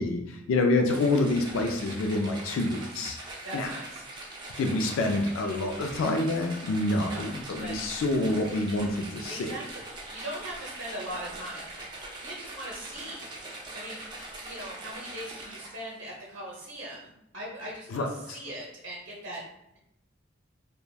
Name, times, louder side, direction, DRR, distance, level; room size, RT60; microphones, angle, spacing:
voice 1, 0.0-3.2 3.5-3.7 4.6-9.5 17.9-18.4, left 2 dB, 85° left, 3 dB, 0.3 m, -27 dB
sound 1, 0.9-16.0, right 2 dB, 20° right, 0.5 m, -42 dB
voice 2, 3.2-4.0 7.0-7.8 9.3-9.8 10.1-11.9 12.2-14.1 14.4-19.4, right 1 dB, 60° right, -5 dB, 0.7 m, -40 dB
3.2 x 2.2 x 2.3 m, 0.82 s
head